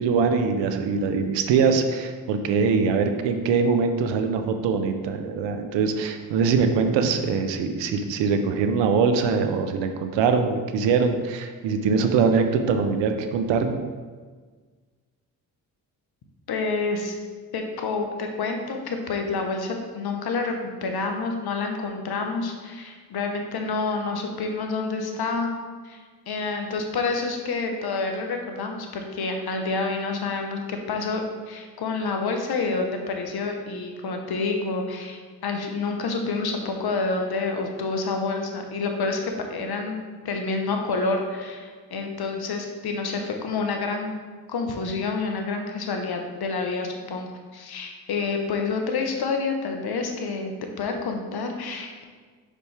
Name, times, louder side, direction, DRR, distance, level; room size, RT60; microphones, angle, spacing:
voice 1, 0.0-13.8, right 5 dB, 85° right, 7 dB, 0.7 m, -23 dB
voice 2, 16.5-17.2 17.5-20.5 20.8-25.5 25.8-31.2 31.5-44.1 44.5-52.0, left 4 dB, 60° left, 3 dB, 1.1 m, -28 dB
5.5 x 5.1 x 3.4 m, 1.5 s
supercardioid pair, 50°, 43 cm